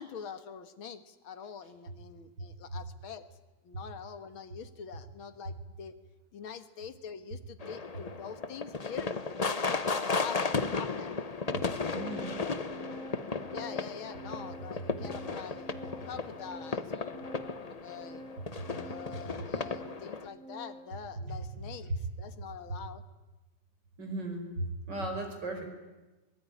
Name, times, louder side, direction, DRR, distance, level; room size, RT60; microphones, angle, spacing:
voice 1, 0.0-3.2 3.6-5.9 6.3-11.2 13.5-15.7 16.0-18.2 18.8-23.0, left 7 dB, 80° left, 11 dB, 2.3 m, -45 dB
sound 1, 7.6-20.3, left 4 dB, 40° left, 0.5 m, -35 dB
Organ, 11.1-21.0, right 1 dB, ahead, 2.0 m, -48 dB
voice 2, 11.9-12.4 21.9-22.0 24.0-25.7, right 1 dB, 55° right, 4 dB, 5.4 m, -36 dB
23.5 x 22.0 x 9.9 m, 1.1 s
omnidirectional pair, 2.2 m